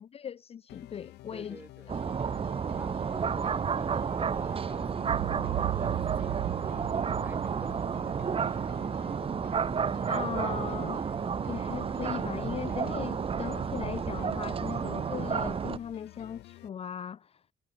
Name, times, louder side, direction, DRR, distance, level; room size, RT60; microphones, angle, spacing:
voice 1, 0.0-1.6 1.9-2.0 10.1-11.0 11.5-17.4, left 8 dB, 35° left, 0.6 m, -38 dB
sound 1, 0.7-16.7, left 18 dB, 85° left, 5.3 m, -50 dB
voice 2, 1.3-1.9 2.8-8.8, right 2 dB, 10° right, 5.0 m, -49 dB
sound 2, 1.9-15.8, right 6 dB, 35° right, 1.3 m, -31 dB
Boom, 5.0-9.3, right 20 dB, 85° right, 0.6 m, -36 dB
cardioid pair, 110°, 17 cm